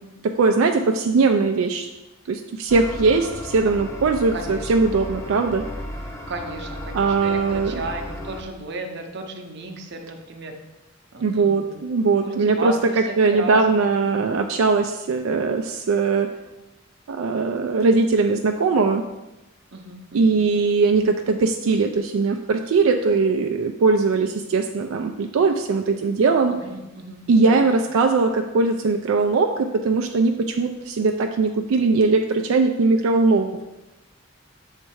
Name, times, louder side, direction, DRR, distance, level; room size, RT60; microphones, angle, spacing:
voice 1, 0.2-1.9 2.3-5.7 6.9-7.7 11.2-12.7 13.2-16.4 17.1-19.0 20.1-26.5 27.3-33.7, right 4 dB, 85° right, 4 dB, 0.4 m, -20 dB
sound 1, 2.7-8.4, left 1 dB, 15° left, 0.6 m, -35 dB
voice 2, 4.3-4.8 6.3-10.5 11.1-11.8 12.1-14.3 19.7-20.4 26.6-27.8, right 2 dB, 55° right, 4 dB, 0.7 m, -34 dB
7.2 x 3.3 x 4.6 m, 1.0 s
head